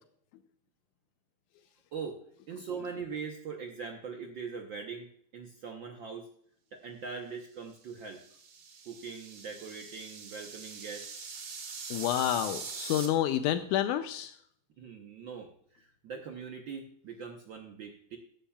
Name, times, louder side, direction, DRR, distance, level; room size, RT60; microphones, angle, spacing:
voice 1, 2.5-6.3 6.7-8.2 8.8-11.1 14.8-18.2, right 5 dB, 90° right, 2 dB, 1.0 m, -41 dB
sound 1, 7.9-13.1, right 5 dB, 50° right, 2.0 m, -43 dB
voice 2, 11.9-14.3, left 11 dB, 85° left, 9 dB, 2.0 m, -29 dB
14.5 x 11.5 x 2.3 m, 0.62 s
omnidirectional pair, 3.5 m